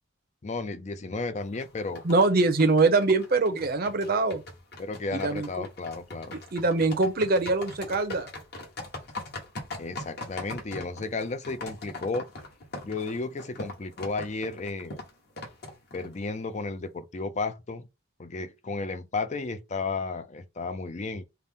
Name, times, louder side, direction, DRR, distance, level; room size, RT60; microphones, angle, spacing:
voice 1, 0.4-2.0 4.8-6.3 9.8-12.3 12.8-15.0 15.9-17.9 18.2-21.2, left 3 dB, 35° left, 0.4 m, -33 dB
sound 1, 1.4-16.3, left 2 dB, 55° left, 1.2 m, -41 dB
voice 2, 2.0-4.4 5.1-5.5 6.5-8.3, right 3 dB, 50° right, 0.7 m, -23 dB
5.6 x 2.1 x 3.6 m
head